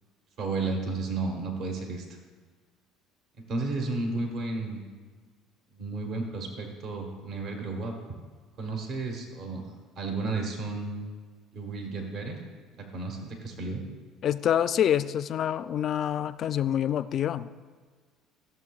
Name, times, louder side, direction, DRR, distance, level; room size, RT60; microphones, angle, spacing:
voice 1, 0.4-2.0 3.5-4.9 5.7-8.0 8.6-11.0 11.5-12.4 12.9-13.8, right 3 dB, 60° right, 3 dB, 1.2 m, -33 dB
voice 2, 14.2-17.5, left 10 dB, 55° left, 14 dB, 0.3 m, -26 dB
14.5 x 6.9 x 2.4 m, 1.5 s
supercardioid pair, 80°, 0 cm